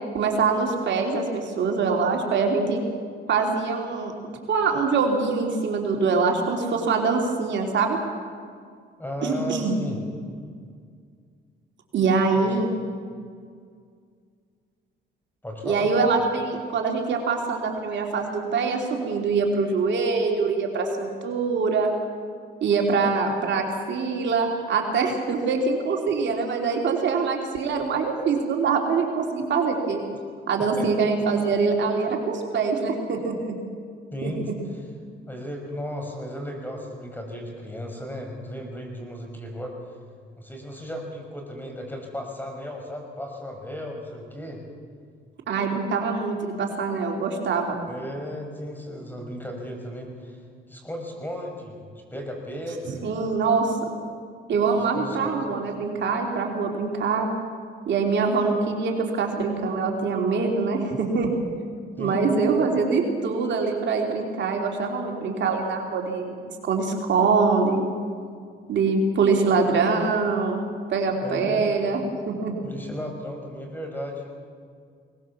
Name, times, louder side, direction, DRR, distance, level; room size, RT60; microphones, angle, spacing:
voice 1, 0.1-2.8 3.3-4.1 4.5-8.0 9.2-9.7 11.9-12.7 15.6-21.9 22.6-30.0 30.5-33.6 34.2-34.3 45.5-47.8 52.9-53.9 54.5-57.3 57.9-61.3 62.0-67.8 68.7-70.6 70.9-72.5, right 4 dB, 65° right, 1 dB, 3.3 m, -24 dB
voice 2, 9.0-10.0 12.4-12.6 15.4-15.9 30.8-30.9 34.1-34.4 35.3-39.7 40.4-44.6 47.9-50.4 50.7-53.1 54.9-55.3 62.0-62.2 71.2-71.7 72.6-74.3, equal, 10° left, 2 dB, 6.0 m, -35 dB
21.5 x 19.5 x 7.3 m, 2.1 s
cardioid pair, 90°, 20 cm